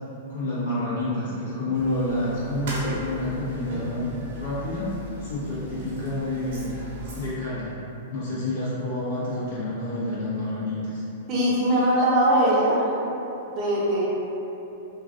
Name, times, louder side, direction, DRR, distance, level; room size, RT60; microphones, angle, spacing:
voice 1, 0.3-6.7 7.2-7.7 8.1-11.0, left 1 dB, 70° left, -10 dB, 1.3 m, -29 dB
sound 1, 1.7-7.3, left 1 dB, 65° right, 0.9 m, -37 dB
voice 2, 11.3-12.8 13.6-14.1, right 1 dB, 35° right, -6 dB, 0.7 m, -21 dB
3.1 x 2.3 x 2.5 m, 3.0 s
hypercardioid pair, 130°, 0 cm